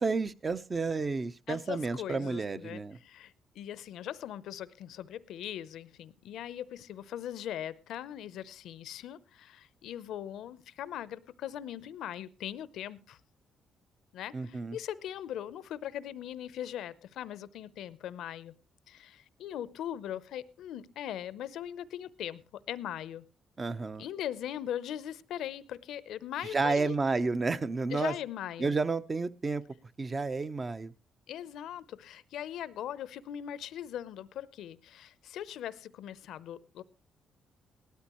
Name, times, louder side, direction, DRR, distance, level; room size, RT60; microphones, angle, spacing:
voice 1, 0.0-3.0 14.3-14.8 23.6-24.1 26.5-28.1 28.6-29.6 30.0-30.9, right 3 dB, 30° right, 0.8 m, -31 dB
voice 2, 1.5-13.2 14.1-18.6 18.9-23.3 24.0-26.9 27.9-28.7 31.3-36.8, left 10 dB, 80° left, 0.7 m, -40 dB
18.5 x 13.0 x 3.0 m
cardioid pair, 90°, 0 cm